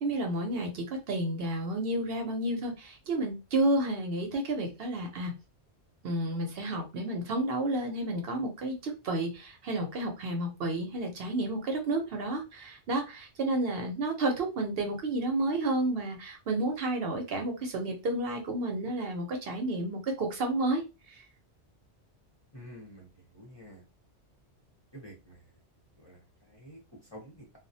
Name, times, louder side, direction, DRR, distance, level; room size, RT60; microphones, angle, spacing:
voice 1, 0.0-5.3 6.0-21.2, right 2 dB, 65° right, 0.8 m, -31 dB
voice 2, 22.5-23.9 24.9-25.5 26.0-27.6, equal, 30° left, 0.6 m, -50 dB
2.3 x 2.0 x 2.6 m
omnidirectional pair, 1.1 m